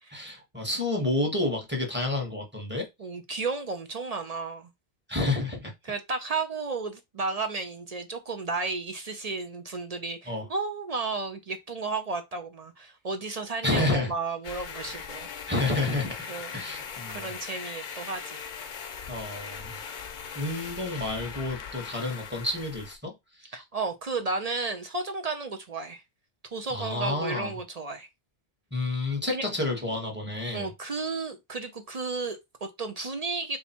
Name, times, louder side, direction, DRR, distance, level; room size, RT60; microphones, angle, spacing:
voice 1, 0.1-2.9 5.1-5.7 10.3-10.5 13.6-14.1 14.9-15.0 15.5-17.3 19.1-19.8 20.3-23.1 23.4-23.6 26.7-27.5 28.7-30.7, left 2 dB, 10° right, 1.2 m, -30 dB
voice 2, 3.0-4.7 5.8-15.3 16.3-16.5 17.1-18.4 23.5-26.0 26.5-28.1 29.3-29.5 30.5-33.6, right 3 dB, 45° right, 0.6 m, -33 dB
sound 1, 14.4-23.0, left 6 dB, 55° left, 0.7 m, -40 dB
3.4 x 2.8 x 4.3 m
omnidirectional pair, 1.1 m